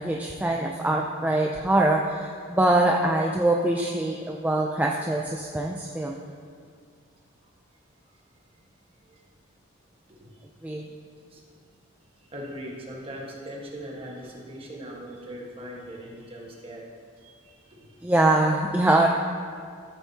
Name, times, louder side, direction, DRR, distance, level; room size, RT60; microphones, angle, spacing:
voice 1, 0.0-6.2 10.6-10.9 18.0-19.1, right 2 dB, 10° right, 0 dB, 0.4 m, -23 dB
voice 2, 12.3-16.8 17.2-17.9, equal, 30° right, -2 dB, 1.4 m, -40 dB
13.5 x 7.1 x 2.8 m, 2.1 s
head